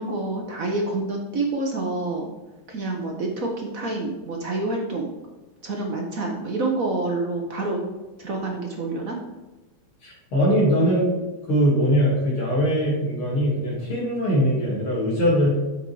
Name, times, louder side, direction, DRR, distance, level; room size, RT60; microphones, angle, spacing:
voice 1, 0.0-2.3 2.7-5.1 5.6-7.8 8.2-9.2, right 2 dB, 50° right, 1 dB, 1.3 m, -27 dB
voice 2, 10.0-11.1 11.5-15.6, equal, 80° left, -5 dB, 3.8 m, -21 dB
7.0 x 6.4 x 4.8 m, 1.1 s
omnidirectional pair, 2.3 m